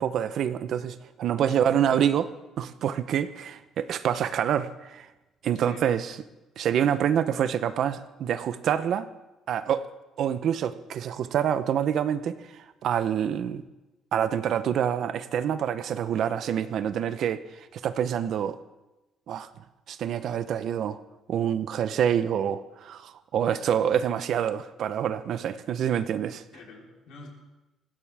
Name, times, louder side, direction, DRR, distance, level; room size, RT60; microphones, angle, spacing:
voice 1, 0.0-2.3 2.6-5.1 5.4-6.2 6.6-9.1 9.5-9.9 10.2-13.6 14.1-18.6 19.3-19.5 19.9-21.0 21.3-26.4, right 9 dB, 55° right, 12 dB, 0.7 m, -27 dB
voice 2, 1.4-2.2 5.5-5.8 26.5-27.3, left 3 dB, 75° left, -1 dB, 4.0 m, -46 dB
20.0 x 16.0 x 3.5 m, 1.0 s
cardioid pair, 145°, 0 cm